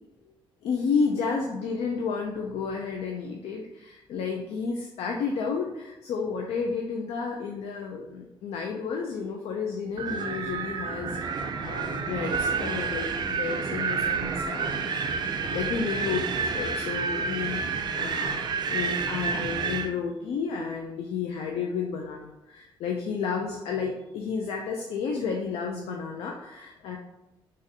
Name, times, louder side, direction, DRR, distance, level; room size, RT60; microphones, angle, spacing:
voice 1, 0.6-15.0 15.2-17.6 17.9-27.0, left 5 dB, 85° left, 1 dB, 0.4 m, -31 dB
Wind, 10.0-19.9, right 5 dB, 50° right, 0.3 m, -29 dB
4.0 x 2.5 x 2.6 m, 0.95 s
cardioid pair, 110°, 10 cm